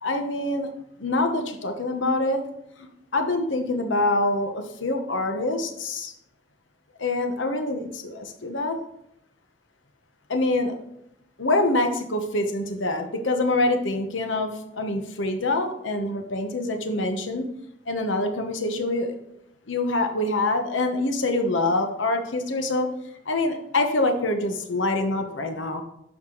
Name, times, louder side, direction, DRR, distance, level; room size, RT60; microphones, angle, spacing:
voice 1, 0.0-0.7 1.0-2.4 2.8-2.9 3.1-6.1 7.0-8.8 10.3-10.7 11.4-17.5 17.9-19.2 19.7-22.9 23.3-25.8, left 2 dB, 75° left, 5 dB, 1.1 m, -25 dB
11.5 x 4.9 x 3.9 m, 0.79 s
head